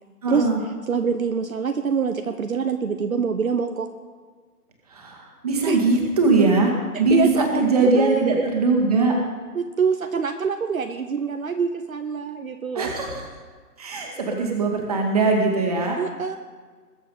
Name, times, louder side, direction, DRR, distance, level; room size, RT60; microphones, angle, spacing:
voice 1, 0.2-0.6 4.9-6.7 7.0-9.1 12.8-13.2 13.8-16.0, right 3 dB, 25° right, 1 dB, 1.9 m, -21 dB
voice 2, 0.9-3.9 5.7-5.8 6.9-8.2 9.5-12.9 16.0-16.4, right 6 dB, 60° right, 7 dB, 0.9 m, -25 dB
21.0 x 7.5 x 5.5 m, 1.5 s
hypercardioid pair, 170°, 48 cm